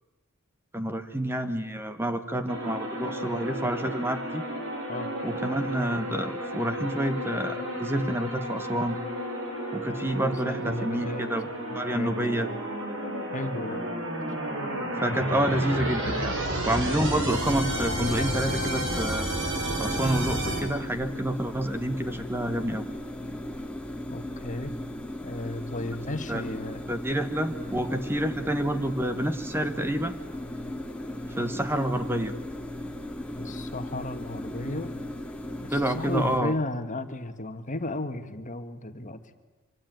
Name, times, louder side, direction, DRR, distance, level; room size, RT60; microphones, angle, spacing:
voice 1, 0.7-4.4 5.2-9.0 9.7-12.5 14.9-16.4 16.6-19.3 19.8-22.8 26.3-26.4 26.9-30.2 31.3-32.3 35.7-36.5, right 1 dB, 10° right, 8 dB, 1.2 m, -28 dB
sound 1, 2.5-20.6, right 1 dB, 60° right, 6.4 m, -32 dB
voice 2, 10.1-11.2 11.7-12.1 13.3-13.8 24.1-24.8 25.2-26.8 33.4-34.9 35.6-39.2, left 1 dB, 35° left, 9 dB, 1.7 m, -34 dB
sound 2, 17.1-36.4, left 1 dB, 5° left, 2.3 m, -37 dB
25.5 x 25.5 x 9.2 m, 1.1 s
head